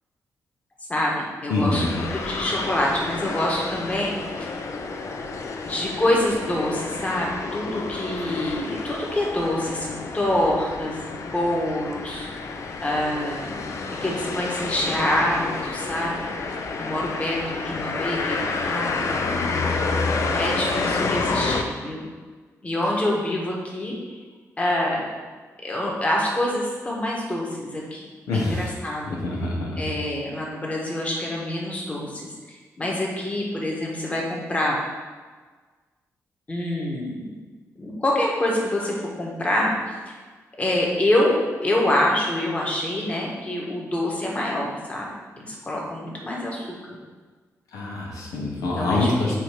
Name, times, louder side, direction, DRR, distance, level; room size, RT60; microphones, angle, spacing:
voice 1, 0.9-4.5 5.6-12.3 12.8-13.6 14.0-16.3 16.8-18.4 18.6-19.1 20.4-22.0 22.6-24.2 24.6-25.1 25.6-29.2 29.8-34.7 36.5-37.3 37.8-40.1 40.6-45.1 45.4-46.7 48.6-49.4, left 1 dB, 25° left, -3 dB, 1.5 m, -26 dB
voice 2, 1.5-1.8 28.3-28.8 29.1-29.9 47.7-49.4, left 2 dB, 85° left, -2 dB, 1.1 m, -25 dB
sound 1, 1.7-21.6, left 3 dB, 60° left, 0.6 m, -29 dB
7.6 x 2.8 x 5.0 m, 1.4 s
cardioid pair, 90°, 6 cm